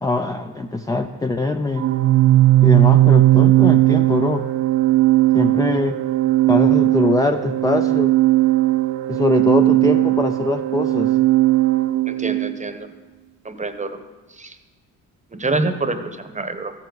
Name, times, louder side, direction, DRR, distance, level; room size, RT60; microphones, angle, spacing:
voice 1, 0.0-1.9 2.6-4.5 5.3-6.0 6.5-8.1 9.1-11.2, left 2 dB, 10° left, 6 dB, 0.4 m, -22 dB
Organ, 1.8-12.5, right 16 dB, 55° right, 0.6 m, -17 dB
voice 2, 12.1-12.9 13.4-14.0 14.4-14.5 15.4-16.7, right 3 dB, 20° right, 8 dB, 0.9 m, -26 dB
14.5 x 6.9 x 4.0 m, 1.3 s
cardioid pair, 75°, 36 cm